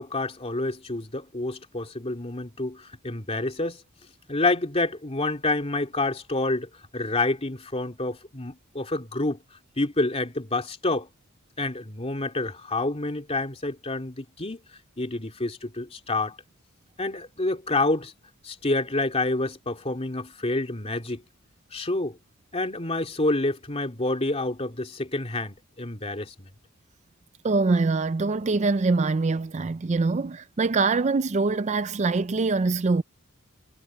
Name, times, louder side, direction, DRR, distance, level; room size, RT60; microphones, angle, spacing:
voice 1, 0.0-3.8 4.3-9.4 9.8-11.1 11.6-14.6 15.0-16.4 17.0-18.1 18.4-21.2 21.7-22.2 22.5-26.5, left 2 dB, 30° left, 2.7 m, -28 dB
voice 2, 27.4-33.0, right 3 dB, 35° right, 0.4 m, -24 dB
head